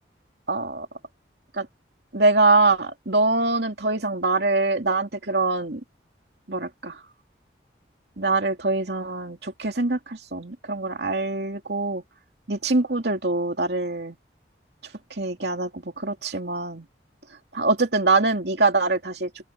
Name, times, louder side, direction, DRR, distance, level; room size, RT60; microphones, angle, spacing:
voice 1, 0.5-0.9 1.6-1.7 2.1-5.8 6.5-7.0 8.2-12.0 12.5-14.1 15.2-16.9 17.5-19.3, right 3 dB, 65° right, 2.8 m, -23 dB
open air
head